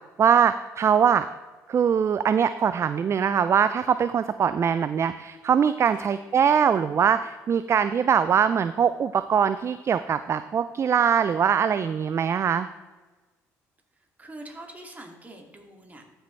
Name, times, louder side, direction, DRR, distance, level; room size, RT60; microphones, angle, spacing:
voice 1, 0.2-1.3 1.7-12.7, right 7 dB, 40° right, 13 dB, 0.4 m, -22 dB
voice 2, 13.9-16.1, right 1 dB, 20° right, 2 dB, 2.3 m, -44 dB
14.5 x 6.2 x 3.2 m, 1.3 s
supercardioid pair, 65°, 7 cm